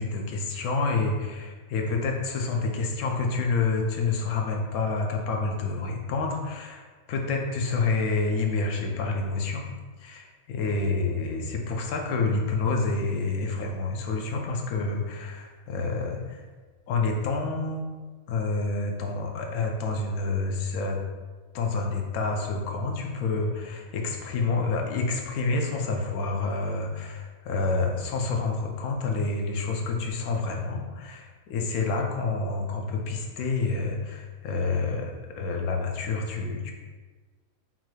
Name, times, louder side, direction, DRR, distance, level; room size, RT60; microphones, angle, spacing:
voice 1, 0.0-9.6 10.0-16.5 16.9-17.8 18.3-21.0 21.5-36.7, left 3 dB, 85° left, 1 dB, 1.1 m, -28 dB
5.6 x 2.2 x 3.1 m, 1.4 s
omnidirectional pair, 1.5 m